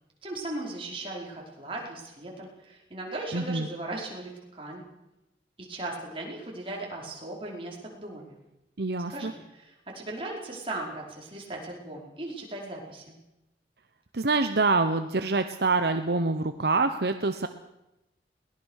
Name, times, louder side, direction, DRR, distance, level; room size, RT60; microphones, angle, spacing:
voice 1, 0.2-4.8 5.6-8.3 9.1-13.2, right 2 dB, 30° right, -2 dB, 5.0 m, -38 dB
voice 2, 3.3-3.7 8.8-9.3 14.1-17.5, right 3 dB, 65° right, 8 dB, 0.9 m, -26 dB
22.0 x 19.0 x 6.6 m, 0.92 s
head